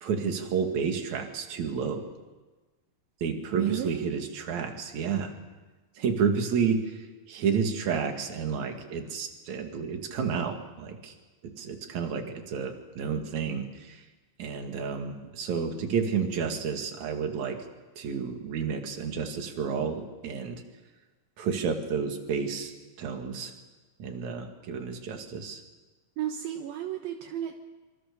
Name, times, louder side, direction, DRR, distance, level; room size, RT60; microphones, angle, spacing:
voice 1, 0.0-2.0 3.2-5.3 6.0-6.8 7.3-11.1 11.4-14.0 14.4-17.6 18.0-20.6 21.4-22.7 23.0-23.5 24.0-25.6, right 6 dB, 50° right, 4 dB, 3.3 m, -30 dB
voice 2, 3.5-4.1 26.2-27.5, right 11 dB, 75° right, 4 dB, 3.0 m, -32 dB
26.0 x 25.0 x 6.9 m, 1.2 s
omnidirectional pair, 4.4 m